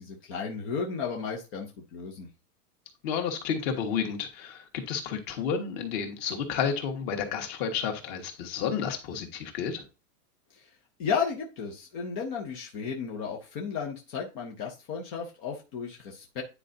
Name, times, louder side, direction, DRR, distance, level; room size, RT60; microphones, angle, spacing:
voice 1, 0.0-2.3 10.5-10.7 11.0-16.4, left 6 dB, 15° left, 0 dB, 0.4 m, -34 dB
voice 2, 3.0-9.8, left 7 dB, 40° left, 4 dB, 1.7 m, -31 dB
9.8 x 4.6 x 2.7 m, 0.31 s
supercardioid pair, 155°, 46 cm